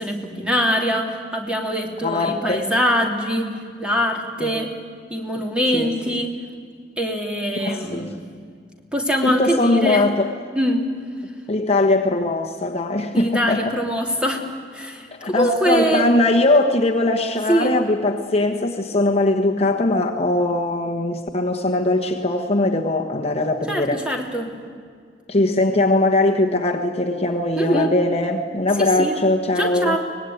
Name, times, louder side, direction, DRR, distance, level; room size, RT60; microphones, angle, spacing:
voice 1, 0.0-4.7 5.1-6.4 7.0-8.3 8.9-10.1 10.5-11.0 13.1-14.4 14.7-16.1 17.5-17.8 23.7-24.5 27.5-27.9 28.8-29.2 29.5-30.0, equal, 5° right, 1 dB, 3.0 m, -23 dB
voice 2, 2.0-2.7 4.4-4.6 5.7-5.9 7.6-8.1 9.2-10.3 11.5-13.6 15.2-24.0 25.3-30.0, left 2 dB, 35° left, 3 dB, 1.3 m, -20 dB
24.5 x 19.5 x 9.3 m, 2.1 s
head